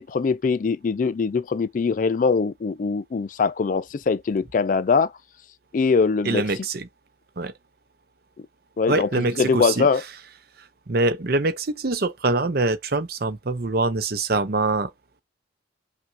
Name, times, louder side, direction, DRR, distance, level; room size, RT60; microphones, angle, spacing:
voice 1, 0.0-5.1 5.7-6.4 8.8-10.0, left 5 dB, 45° left, 0.3 m, -22 dB
voice 2, 6.2-6.9 7.4-7.5 8.9-9.9 10.9-14.9, right 2 dB, 50° right, 0.7 m, -24 dB
5.8 x 2.4 x 2.7 m
head